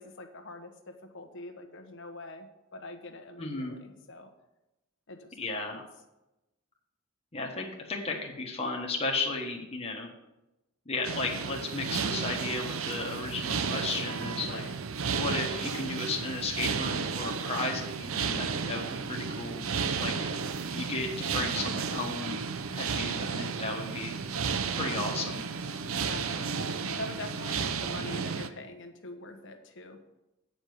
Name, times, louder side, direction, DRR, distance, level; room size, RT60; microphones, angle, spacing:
voice 1, 0.0-4.3 5.1-5.9 14.4-14.7 20.1-20.4 25.9-26.6 27.0-30.0, left 2 dB, 65° left, 6 dB, 1.2 m, -44 dB
voice 2, 3.4-3.8 5.4-5.8 7.3-10.1 10.8-14.6 15.1-19.7 20.0-20.1 20.7-22.4 22.8-24.2 24.7-25.4, left 3 dB, 30° left, -1 dB, 1.3 m, -34 dB
sound 1, 11.0-28.5, right 5 dB, 80° right, 0.7 m, -33 dB
9.0 x 5.3 x 7.7 m, 0.97 s
head